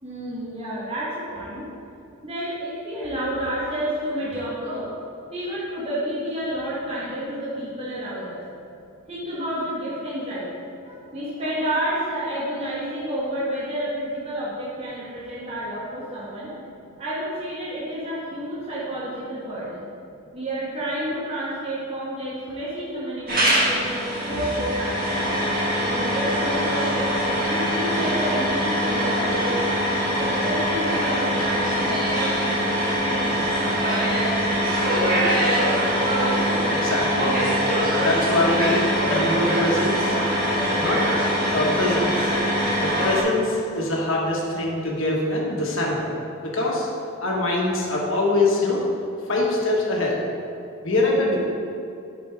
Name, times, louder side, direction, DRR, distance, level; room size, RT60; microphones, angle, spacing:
voice 1, 0.0-1.6 2.2-4.8 5.3-8.4 9.1-19.9 20.3-25.1 25.8-27.1 27.5-29.6 30.0-34.1, equal, 30° right, -8 dB, 1.5 m, -30 dB
sound 1, 23.3-43.2, equal, 45° right, 1.6 m, -23 dB
voice 2, 36.7-38.8 39.1-40.2 40.8-41.0 41.5-42.3 42.8-46.1 46.4-46.9 47.2-48.8 49.3-50.2 50.8-51.4, left 2 dB, 65° left, -3 dB, 1.4 m, -23 dB
8.1 x 6.1 x 3.5 m, 2.7 s
head